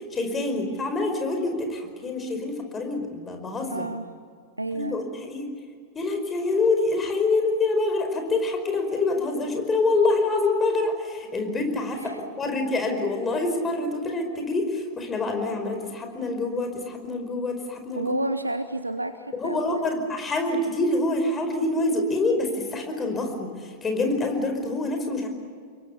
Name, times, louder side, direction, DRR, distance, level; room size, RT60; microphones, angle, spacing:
voice 1, 0.1-3.9 4.7-5.5 5.9-12.1 12.4-18.2 19.4-25.3, left 2 dB, 20° left, 4 dB, 5.1 m, -26 dB
voice 2, 3.7-4.1 4.6-5.4 12.0-12.2 17.9-19.8, right 2 dB, 85° right, 12 dB, 0.9 m, -31 dB
28.5 x 23.0 x 7.2 m, 2.1 s
figure-of-eight pair, 90°, 0 cm